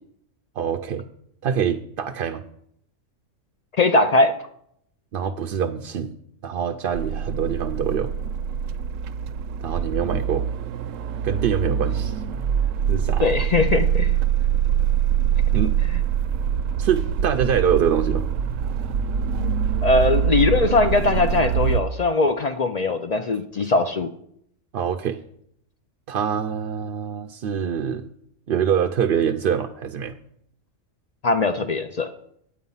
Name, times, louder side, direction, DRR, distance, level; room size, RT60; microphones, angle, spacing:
voice 1, 0.6-1.0 1.4-2.4 5.1-6.1 6.4-8.1 9.6-10.5 11.2-12.2 12.9-13.3 15.5-15.7 16.8-18.3 24.7-25.2 26.1-28.1 28.5-30.1, right 8 dB, 60° right, 6 dB, 0.6 m, -24 dB
voice 2, 3.8-4.4 13.2-14.1 19.4-19.5 19.8-24.1 31.2-32.1, left 3 dB, 65° left, 8 dB, 0.4 m, -20 dB
sound 1, 6.9-21.8, right 8 dB, 80° right, 0.9 m, -24 dB
9.4 x 8.4 x 5.5 m, 0.71 s
omnidirectional pair, 1.4 m